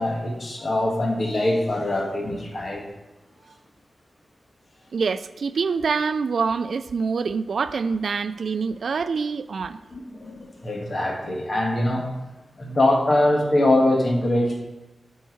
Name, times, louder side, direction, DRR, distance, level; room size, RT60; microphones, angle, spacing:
voice 1, 0.0-2.8 9.9-12.1 12.6-14.6, left 1 dB, 40° left, 1.6 m, -23 dB
voice 2, 4.9-9.8, right 5 dB, 80° right, 0.3 m, -25 dB
12.5 x 4.6 x 4.6 m
wide cardioid pair, 140°, 0 cm